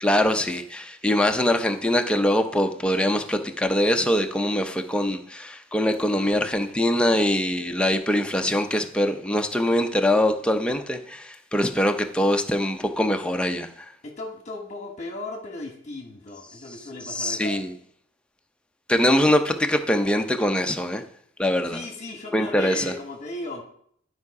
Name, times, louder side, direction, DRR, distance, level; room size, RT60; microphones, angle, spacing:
voice 1, 0.0-13.9 17.1-17.7 18.9-21.0 21.4-21.8 22.3-22.9, left 1 dB, 5° left, 5 dB, 0.6 m, -23 dB
voice 2, 6.1-6.6 14.0-17.6 21.7-23.6, left 2 dB, 35° left, 2 dB, 1.3 m, -36 dB
11.0 x 4.9 x 4.7 m, 0.65 s
head